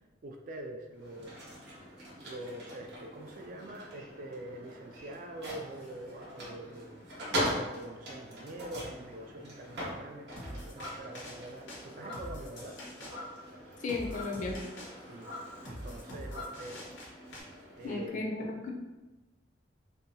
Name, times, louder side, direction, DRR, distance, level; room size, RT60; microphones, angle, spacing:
voice 1, 0.2-1.5 2.2-7.0 7.7-12.8 15.1-15.3 15.7-16.9 17.8-18.4, right 1 dB, 45° right, 3 dB, 0.3 m, -45 dB
sound 1, 0.9-18.1, equal, 65° right, 0.8 m, -42 dB
sound 2, 10.4-17.4, equal, 85° left, 0.6 m, -46 dB
sound 3, 10.8-11.2 11.9-12.4 13.0-13.4 14.0-14.4 15.2-16.6, left 1 dB, 20° right, 0.7 m, -44 dB
voice 2, 13.8-14.5 17.8-18.7, left 3 dB, 45° left, 0 dB, 0.4 m, -34 dB
2.7 x 2.2 x 2.7 m, 1.1 s
head